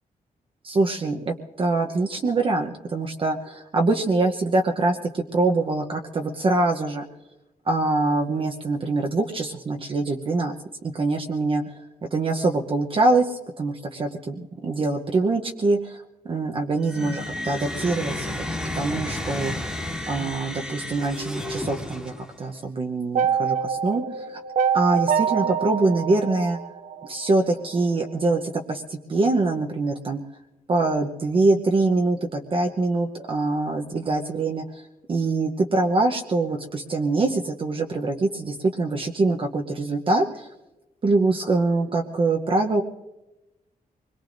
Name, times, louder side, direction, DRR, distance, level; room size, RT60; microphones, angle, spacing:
voice 1, 0.6-7.0 7.7-10.5 10.8-11.8 12.1-18.4 18.7-19.8 20.1-24.4 24.7-26.6 27.0-30.2 30.7-34.8 35.1-40.5 41.0-42.8, right 3 dB, 35° right, 2 dB, 0.8 m, -24 dB
sound 1, 16.8-22.5, left 1 dB, 5° right, 1.7 m, -32 dB
sound 2, 23.2-27.3, right 7 dB, 55° right, 0.4 m, -25 dB
25.0 x 21.5 x 2.6 m, 1.0 s
wide cardioid pair, 165°, 15 cm